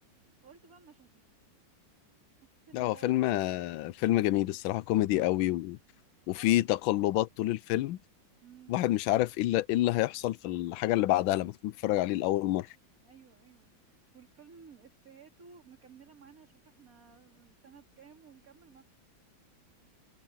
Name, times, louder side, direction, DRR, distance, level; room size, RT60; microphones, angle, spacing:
voice 1, 0.1-1.2 2.4-3.2 6.3-6.7 8.4-8.7 13.0-13.7 14.1-18.8, right 6 dB, 45° right, 3.2 m, -55 dB
voice 2, 2.7-5.8 6.3-8.0 8.7-12.7, left 15 dB, 85° left, 1.4 m, -28 dB
omnidirectional pair, 2.1 m